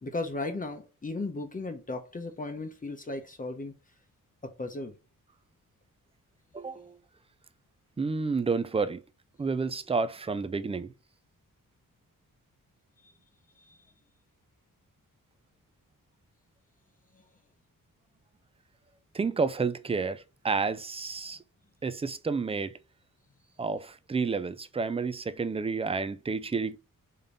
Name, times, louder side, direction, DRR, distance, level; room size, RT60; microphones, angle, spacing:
voice 1, 0.0-3.7 4.4-5.0 13.0-13.1 13.6-13.9 17.1-17.2, left 2 dB, 25° left, 0.9 m, -36 dB
voice 2, 6.5-6.9 8.0-9.0 9.4-10.9 19.1-21.4 21.8-22.7 23.6-26.8, right 4 dB, 20° right, 0.4 m, -30 dB
5.3 x 3.8 x 5.4 m
wide cardioid pair, 175°, 33 cm